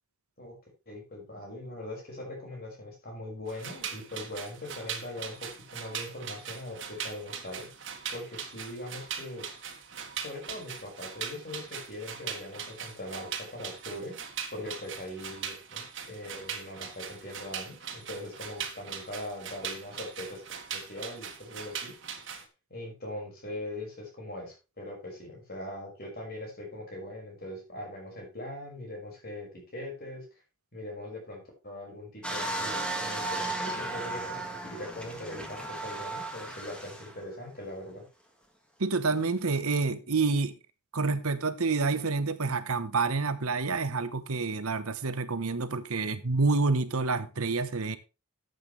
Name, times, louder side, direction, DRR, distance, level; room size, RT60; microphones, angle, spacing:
voice 1, 0.9-7.7 8.1-9.4 10.2-14.2 14.5-15.8 16.1-20.4 20.7-21.9 22.7-30.3 30.7-38.1, left 1 dB, 45° left, 5.6 m, -41 dB
sound 1, 3.5-22.4, right 7 dB, 60° right, 1.9 m, -40 dB
sound 2, 32.2-37.2 37.8-37.9, right 2 dB, 5° left, 1.8 m, -35 dB
voice 2, 38.8-40.5 40.9-48.0, right 4 dB, 90° right, 1.0 m, -28 dB
12.5 x 8.2 x 3.3 m
head